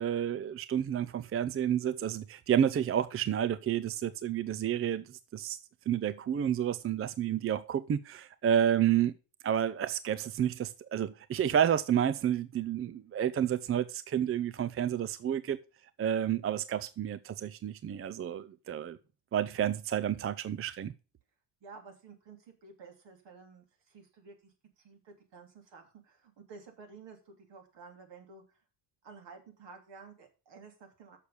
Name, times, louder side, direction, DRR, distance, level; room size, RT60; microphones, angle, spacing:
voice 1, 0.0-5.0 5.3-5.6 5.9-9.1 9.4-15.6 16.0-19.0 19.3-20.9, right 9 dB, 30° right, 0.5 m, -30 dB
voice 2, 21.6-28.6 29.0-31.2, right 4 dB, 65° right, 3.2 m, -52 dB
6.6 x 6.5 x 6.9 m
cardioid pair, 90°, 46 cm